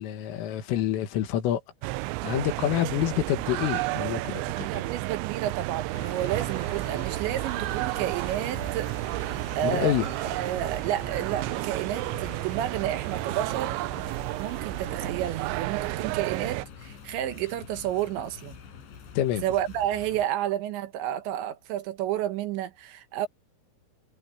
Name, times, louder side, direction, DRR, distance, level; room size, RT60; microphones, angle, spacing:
voice 1, 0.0-1.6 2.2-4.8 9.6-10.1 19.2-19.4, left 12 dB, 85° left, 4.3 m, -27 dB
sound 1, 1.8-16.7, right 21 dB, 90° right, 2.5 m, -32 dB
voice 2, 4.6-8.9 9.5-13.8 14.4-18.6 19.4-23.3, right 12 dB, 75° right, 3.2 m, -31 dB
sound 2, 5.9-20.3, left 7 dB, 65° left, 6.3 m, -45 dB
omnidirectional pair, 5.7 m